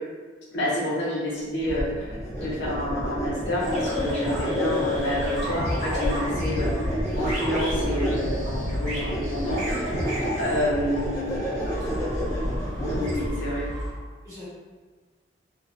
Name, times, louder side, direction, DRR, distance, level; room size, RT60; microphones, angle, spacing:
voice 1, 0.5-6.8 7.2-9.8 10.3-11.6 12.8-13.6, left 1 dB, 65° left, -5 dB, 0.6 m, -29 dB
sound 1, 1.7-13.3, equal, 15° left, 0.4 m, -30 dB
sound 2, 3.6-13.9, left 1 dB, 50° right, 1.2 m, -31 dB
voice 2, 10.9-11.3 11.7-12.3 12.9-13.5 14.2-14.5, left 3 dB, 15° right, -12 dB, 0.9 m, -42 dB
2.4 x 2.0 x 2.5 m, 1.4 s
head